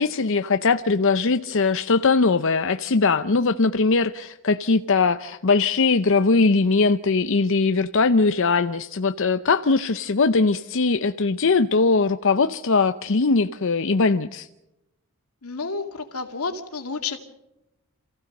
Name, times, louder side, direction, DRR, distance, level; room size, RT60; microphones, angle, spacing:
voice 1, 0.0-14.5, left 4 dB, 60° left, 9 dB, 0.7 m, -20 dB
voice 2, 15.4-17.2, left 4 dB, 90° left, 5 dB, 2.4 m, -30 dB
28.0 x 15.5 x 6.6 m, 0.91 s
head